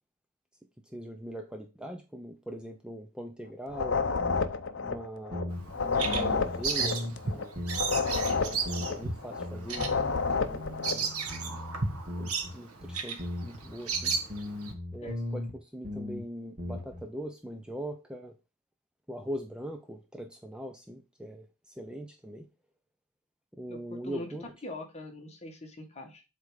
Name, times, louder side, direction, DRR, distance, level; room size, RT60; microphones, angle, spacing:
voice 1, 0.8-4.0 4.8-7.6 8.1-10.0 10.3-11.1 11.4-11.6 12.2-14.1 14.9-18.3 19.1-22.5 23.5-24.4, equal, 5° right, 5 dB, 0.6 m, -41 dB
sound 1, 3.7-11.1, left 4 dB, 55° left, 0.7 m, -30 dB
sound 2, 4.2-4.7 4.9-5.0 5.3-5.8 6.0-7.2 7.5-8.0 8.3-9.1 9.4-12.5 12.8-15.6 15.8-16.2 16.6-17.0, left 1 dB, 35° right, 1.7 m, -38 dB
Bird vocalization bird call bird song, 5.5-14.7, right 5 dB, 85° right, 1.5 m, -34 dB
voice 2, 23.7-24.3 24.6-26.2, left 1 dB, 30° left, 3 dB, 1.8 m, -42 dB
7.9 x 3.6 x 4.8 m, 0.28 s
head